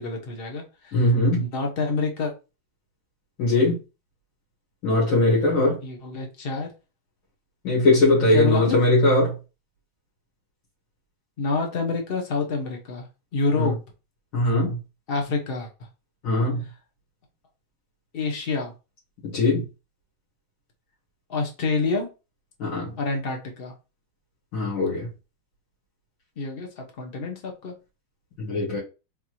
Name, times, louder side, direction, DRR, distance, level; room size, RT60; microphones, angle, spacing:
voice 1, 0.0-1.0 1.4-2.3 5.8-6.7 8.3-8.8 11.4-13.1 13.3-13.7 15.1-15.7 18.1-18.7 21.3-22.1 23.0-23.7 26.4-27.7, left 4 dB, 50° left, 0.6 m, -27 dB
voice 2, 0.9-1.5 3.4-3.8 4.8-5.8 7.6-9.4 13.6-13.7 14.3-14.8 16.2-16.6 19.2-19.6 22.6-22.9 24.5-25.1 28.4-28.8, left 2 dB, 75° left, 2.4 m, -20 dB
4.1 x 3.5 x 2.9 m
omnidirectional pair, 2.2 m